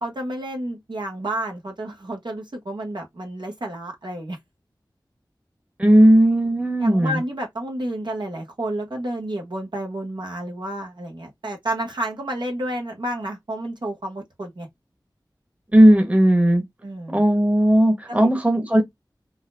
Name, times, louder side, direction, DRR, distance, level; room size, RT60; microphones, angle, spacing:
voice 1, 0.0-4.4 6.8-14.7 16.8-17.2 18.1-18.3, right 1 dB, 75° right, 1.2 m, -30 dB
voice 2, 5.8-7.2 15.7-16.6 17.1-18.8, right 1 dB, 15° right, 1.1 m, -16 dB
3.9 x 2.2 x 2.6 m
wide cardioid pair, 45°, 8 cm